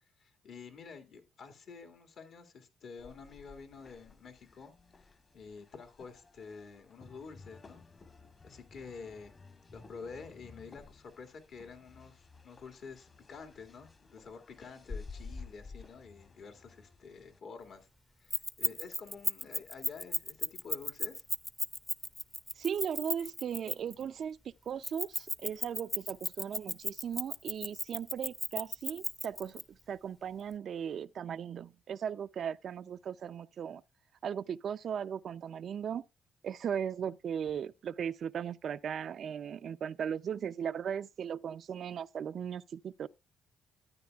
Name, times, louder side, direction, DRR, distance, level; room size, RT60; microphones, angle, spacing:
voice 1, 0.2-4.7 5.3-7.8 8.4-9.3 9.7-17.9 18.2-21.2, left 5 dB, 65° left, 2.2 m, -49 dB
sound 1, 3.0-17.4, left 4 dB, 35° left, 1.5 m, -52 dB
Keys jangling, 18.3-24.0 24.8-29.6, left 1 dB, 10° left, 0.7 m, -35 dB
voice 2, 22.6-24.4 24.7-33.8 34.2-36.1 36.4-43.1, right 8 dB, 60° right, 0.4 m, -37 dB
13.5 x 9.4 x 2.4 m
cardioid pair, 90°, 0 cm